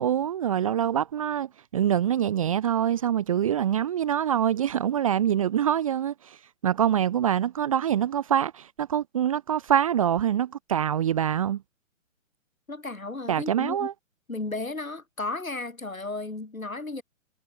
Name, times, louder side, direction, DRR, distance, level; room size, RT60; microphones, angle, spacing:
voice 1, 0.0-6.4 6.6-11.6 13.3-13.9, right 10 dB, 25° right, 0.6 m, -25 dB
voice 2, 12.7-13.9 14.3-17.0, left 2 dB, 90° left, 4.7 m, -34 dB
figure-of-eight pair, 135°, 40 cm